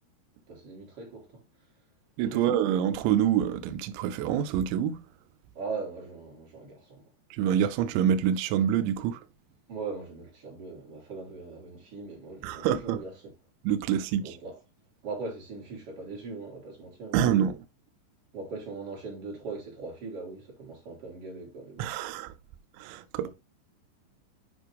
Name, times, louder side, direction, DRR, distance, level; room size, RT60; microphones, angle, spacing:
voice 1, 0.5-1.4 2.3-2.5 5.6-7.1 9.7-13.3 14.2-14.6 15.0-17.3 18.3-21.9 23.2-23.3, right 4 dB, 35° right, 3.5 m, -40 dB
voice 2, 2.2-5.0 7.3-9.2 12.4-13.0 13.6-14.4 17.1-17.6 21.8-22.3 22.8-23.3, right 9 dB, 85° right, 2.6 m, -26 dB
9.3 x 5.3 x 3.4 m
omnidirectional pair, 5.9 m